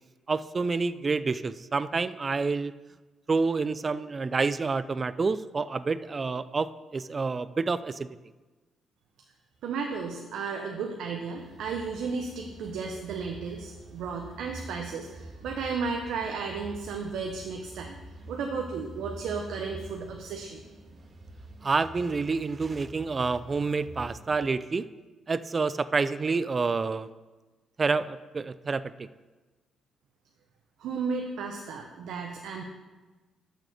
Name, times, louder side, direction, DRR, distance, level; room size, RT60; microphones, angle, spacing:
voice 1, 0.3-2.7 3.3-8.1 21.6-24.9 25.3-27.1 27.8-29.1, right 4 dB, 35° right, 15 dB, 0.3 m, -28 dB
voice 2, 9.6-18.0 18.3-20.6 30.8-32.6, right 5 dB, 80° right, 2 dB, 0.8 m, -34 dB
sound 1, 11.4-24.4, right 1 dB, 50° right, 1.4 m, -47 dB
6.5 x 6.4 x 6.5 m, 1.2 s
cardioid pair, 90°, 0 cm